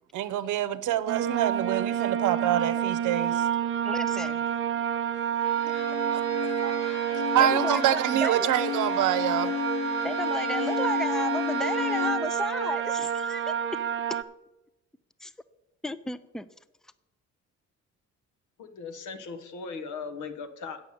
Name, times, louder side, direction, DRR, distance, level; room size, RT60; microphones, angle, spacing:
voice 1, 0.1-3.4 6.1-6.2 6.6-9.5, right 12 dB, 85° right, 0.7 m, -26 dB
sound 1, 1.1-14.2, right 9 dB, 45° right, 0.6 m, -29 dB
voice 2, 3.8-4.4 7.4-8.5 10.0-13.5 15.2-15.3 15.8-16.5, left 1 dB, ahead, 0.5 m, -33 dB
Bowed string instrument, 5.4-12.3, left 9 dB, 65° left, 1.6 m, -33 dB
voice 3, 18.6-20.8, left 5 dB, 80° left, 1.3 m, -38 dB
8.5 x 6.9 x 8.5 m
cardioid pair, 90°, 30 cm